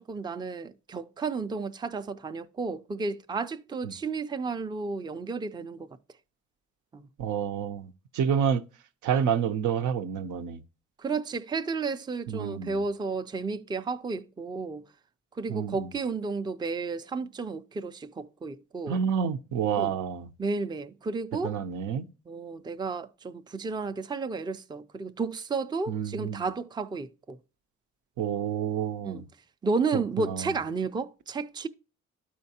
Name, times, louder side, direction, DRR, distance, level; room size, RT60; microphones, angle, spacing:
voice 1, 0.0-5.9 6.9-7.1 11.0-14.8 15.4-19.0 19.8-19.9 20.4-21.6 22.3-27.4 29.0-29.2 29.6-31.7, right 4 dB, 15° right, 0.4 m, -32 dB
voice 2, 7.2-8.6 9.0-10.6 12.3-12.8 15.5-15.9 18.9-20.3 21.4-22.1 25.9-26.4 28.2-29.2 29.9-30.5, right 8 dB, 80° right, 0.7 m, -29 dB
12.5 x 4.3 x 2.8 m
cardioid pair, 90°, 30 cm